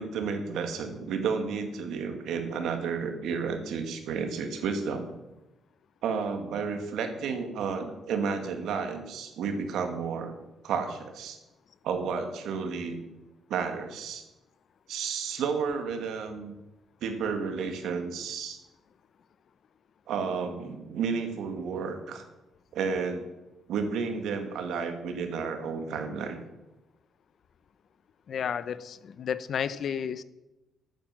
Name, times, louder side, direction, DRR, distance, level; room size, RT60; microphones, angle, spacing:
voice 1, 0.0-5.1 6.0-10.3 10.6-11.4 11.8-13.0 13.5-14.2 14.9-16.5 17.0-18.6 20.1-22.2 22.7-23.3 23.7-26.4, right 5 dB, 80° right, 6 dB, 2.1 m, -31 dB
voice 2, 28.3-30.2, left 8 dB, 50° left, 16 dB, 0.7 m, -32 dB
13.0 x 9.0 x 7.3 m, 1.0 s
cardioid pair, 140°, 0 cm